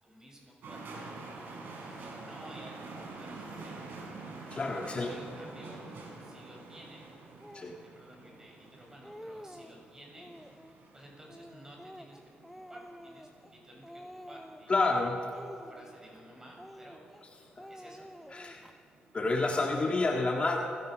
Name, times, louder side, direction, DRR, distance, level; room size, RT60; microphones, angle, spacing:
voice 1, 0.0-1.1 1.9-3.9 4.8-5.9 6.2-7.1 7.8-10.3 10.6-17.0 17.7-18.1, equal, 15° right, -1 dB, 7.0 m, -54 dB
sound 1, 0.6-19.4, right 3 dB, 85° right, 5.4 m, -48 dB
voice 2, 4.5-5.1 7.5-7.7 14.7-15.2 17.6-17.7 18.3-18.6 19.1-20.6, left 3 dB, 35° left, 1 dB, 1.7 m, -29 dB
Speech, 7.4-7.7 8.5-8.6 8.9-9.8 10.2-10.8 11.3-13.6 13.8-14.8 15.3-16.2 16.6-17.2 17.6-18.7, equal, ahead, 0.9 m, -49 dB
29.0 x 17.0 x 6.4 m, 2.6 s
cardioid pair, 115°, 3 cm